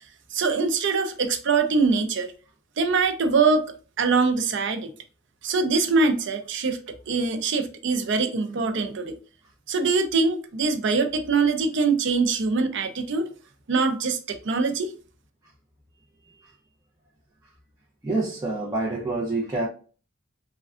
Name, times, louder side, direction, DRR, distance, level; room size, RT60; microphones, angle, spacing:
voice 1, 0.3-2.3 2.8-3.7 4.0-4.9 5.4-6.8 7.1-9.2 9.7-13.3 13.7-14.9, right 4 dB, 65° right, 0.5 m, -23 dB
voice 2, 18.0-19.7, right 2 dB, 15° right, 0.5 m, -27 dB
3.4 x 2.2 x 2.3 m
head